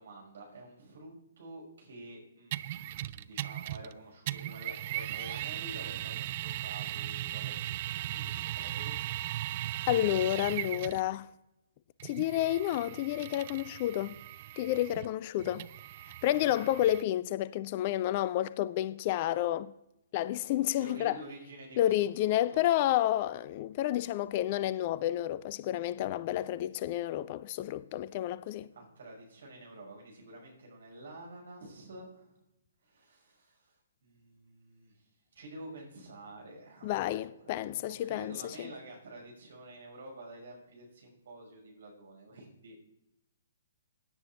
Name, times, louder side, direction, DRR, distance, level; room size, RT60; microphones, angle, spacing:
voice 1, 0.0-8.9 20.8-22.6 28.7-32.4 32.8-33.7 34.0-34.9 35.3-42.8, right 1 dB, 55° right, 5.8 m, -49 dB
sound 1, 2.5-3.9 4.3-11.1 12.0-17.0, right 14 dB, 35° right, 0.4 m, -38 dB
voice 2, 9.9-11.3 12.0-14.2 14.6-15.7 16.2-19.7 20.1-21.2 21.8-28.7 36.8-38.7, left 13 dB, 35° left, 0.4 m, -30 dB
16.5 x 9.6 x 3.6 m
figure-of-eight pair, 125°, 0 cm